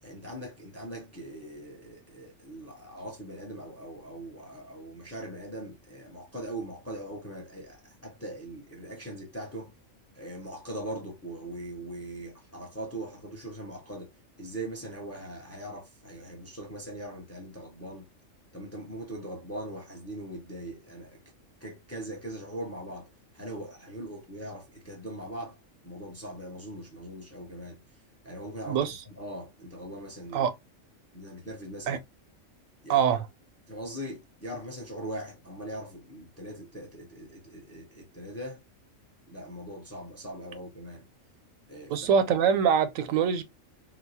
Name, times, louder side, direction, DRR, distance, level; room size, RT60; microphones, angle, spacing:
voice 1, 0.0-9.7 10.1-14.1 14.4-18.1 18.5-21.2 21.6-23.1 23.3-25.6 25.8-30.5 31.1-32.0 32.8-33.0 33.7-38.6 39.3-41.1 41.7-42.2, right 1 dB, 15° left, 0.6 m, -41 dB
voice 2, 28.7-29.0 30.3-30.5 31.9-32.0 32.9-33.3 41.9-43.4, right 7 dB, 80° right, 0.9 m, -24 dB
4.0 x 2.1 x 2.7 m
omnidirectional pair, 1.4 m